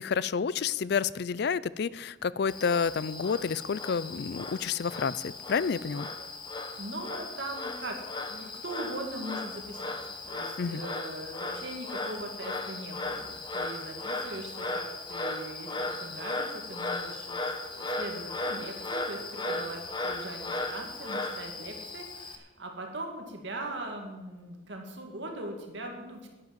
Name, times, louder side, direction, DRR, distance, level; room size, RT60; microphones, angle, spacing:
voice 1, 0.0-6.1 10.6-10.8, left 6 dB, 55° left, 19 dB, 0.4 m, -29 dB
Frog, 2.5-22.4, left 2 dB, 25° left, 1.3 m, -36 dB
voice 2, 6.8-8.0 8.3-10.0 10.2-26.3, right 1 dB, 65° right, 2 dB, 2.2 m, -40 dB
10.5 x 10.5 x 7.6 m, 1.1 s
head